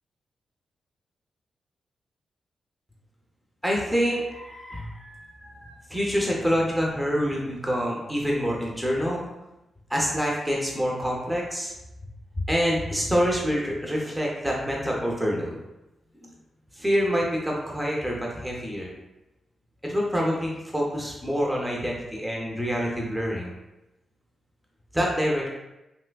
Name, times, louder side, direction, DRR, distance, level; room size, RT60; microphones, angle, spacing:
voice 1, 3.6-9.3 9.9-11.7 12.5-15.6 16.2-16.3 16.8-18.9 19.8-23.5 24.9-25.5, equal, 5° right, -3 dB, 0.6 m, -26 dB
3.3 x 3.0 x 2.2 m, 0.97 s
cardioid pair, 100°, 0 cm